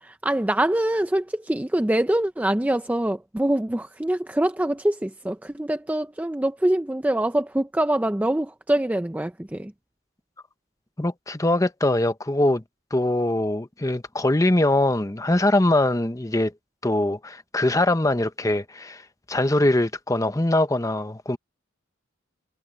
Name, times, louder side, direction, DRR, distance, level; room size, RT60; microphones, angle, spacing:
voice 1, 0.0-9.7, right 1 dB, 5° right, 0.4 m, -24 dB
voice 2, 11.0-12.6 12.9-16.5 16.8-19.0 19.3-21.4, left 1 dB, 15° left, 0.8 m, -22 dB
head